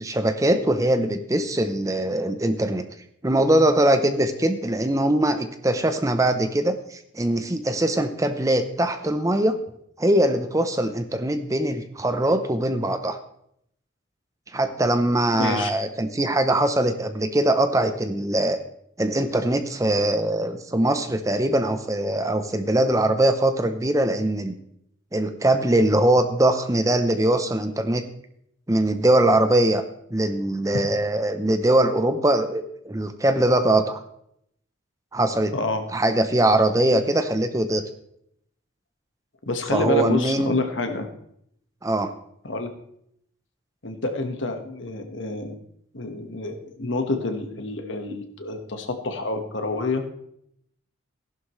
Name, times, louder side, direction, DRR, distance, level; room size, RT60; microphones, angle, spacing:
voice 1, 0.0-2.9 3.2-9.6 10.0-13.2 14.5-18.6 19.0-24.5 25.1-28.0 28.7-29.8 30.1-34.0 35.1-35.5 35.9-37.8 39.7-40.6 41.8-42.1, right 1 dB, 15° right, 9 dB, 0.6 m, -22 dB
voice 2, 15.3-15.7 35.5-35.8 39.5-41.1 42.4-42.7 43.8-45.6 45.9-50.0, left 2 dB, 70° left, 5 dB, 1.4 m, -28 dB
15.0 x 11.5 x 3.2 m, 0.72 s
head